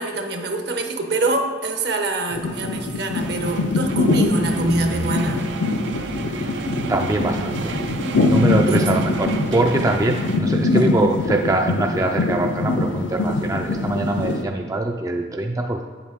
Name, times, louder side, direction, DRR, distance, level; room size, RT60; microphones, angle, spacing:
voice 1, 0.0-5.4 8.7-8.9 10.7-10.8, right 2 dB, 65° right, 5 dB, 0.8 m, -25 dB
sound 1, 2.3-14.4, left 2 dB, 85° left, 0.6 m, -23 dB
sound 2, 3.1-10.4, right 3 dB, 85° right, 0.5 m, -31 dB
voice 2, 6.3-6.6 6.9-7.8 8.3-15.8, right 2 dB, 20° right, 2 dB, 0.3 m, -23 dB
8.3 x 7.1 x 3.5 m, 1.6 s
head